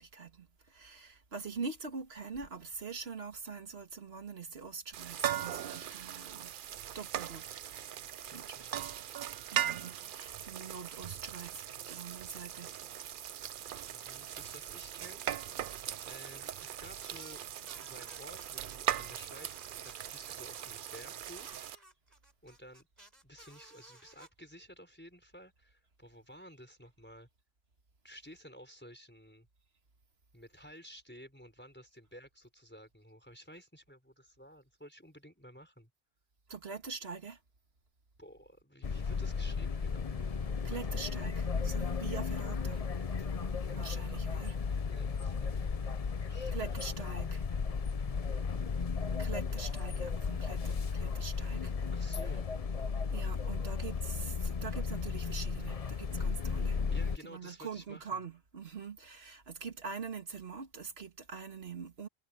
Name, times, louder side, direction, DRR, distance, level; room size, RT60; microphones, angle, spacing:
voice 1, 0.0-6.5 6.9-7.6 8.2-8.7 9.5-12.8 36.5-37.4 40.6-44.6 46.5-47.5 49.2-51.7 52.1-52.4 53.1-62.1, right 5 dB, 85° right, 2.0 m, -44 dB
sound 1, 4.9-21.7, right 10 dB, 60° right, 0.7 m, -39 dB
voice 2, 8.3-8.9 13.9-15.2 16.1-17.4 17.8-21.6 22.4-22.9 23.2-27.3 28.0-29.5 30.3-35.9 38.2-40.1 44.9-45.7 46.3-46.8 51.9-52.6 56.9-58.2, equal, 10° left, 4.7 m, -53 dB
sound 2, 17.0-18.7 19.1-21.0 21.4-24.3, right 1 dB, 40° right, 4.7 m, -58 dB
sound 3, 38.8-57.2, left 5 dB, 40° left, 0.8 m, -34 dB
omnidirectional pair, 1.0 m